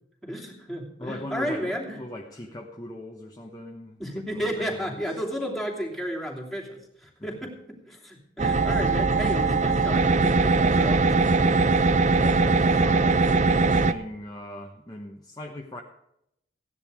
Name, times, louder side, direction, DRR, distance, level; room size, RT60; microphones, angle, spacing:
voice 1, 0.2-2.0 4.0-11.6, equal, ahead, -2 dB, 2.8 m, -33 dB
voice 2, 1.0-5.0 7.2-7.5 12.2-15.8, left 1 dB, 20° left, 0 dB, 1.1 m, -40 dB
sound 1, 8.4-13.9, right 3 dB, 40° right, 0.6 m, -21 dB
16.0 x 10.5 x 4.9 m, 0.79 s
head